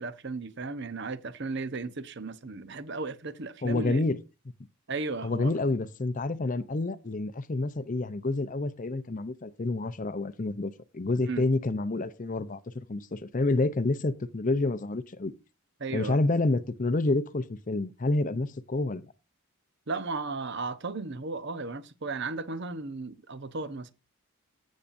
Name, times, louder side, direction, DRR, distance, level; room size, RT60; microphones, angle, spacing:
voice 1, 0.0-4.0 4.9-5.5 11.2-11.4 15.8-16.2 19.9-23.9, right 3 dB, 55° right, 0.8 m, -35 dB
voice 2, 3.6-4.2 5.2-15.3 15.9-19.1, left 2 dB, 35° left, 0.6 m, -28 dB
15.5 x 7.3 x 2.6 m
head